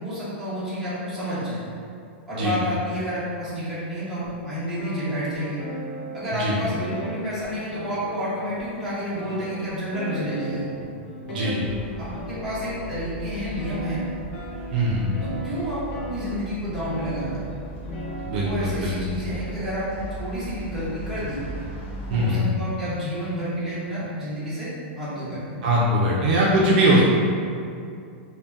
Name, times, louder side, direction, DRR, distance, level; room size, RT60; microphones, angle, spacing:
voice 1, 0.0-1.6 2.3-5.6 6.1-10.7 11.3-11.5 12.0-14.0 15.2-17.4 18.3-21.4 22.1-24.7 25.0-25.6, equal, ahead, -14 dB, 0.8 m, -30 dB
sound 1, 4.2-4.4 4.8-8.6 9.1-13.1 13.5-17.4 17.8-18.3, equal, 80° left, 0.7 m, -36 dB
sound 2, 11.6-22.2, right 1 dB, 50° left, 0.7 m, -38 dB
voice 2, 14.7-15.1 18.3-19.0 22.1-22.4 25.6-27.0, right 1 dB, 45° right, -5 dB, 0.4 m, -21 dB
2.7 x 2.1 x 3.4 m, 2.4 s
supercardioid pair, 170°, 7 cm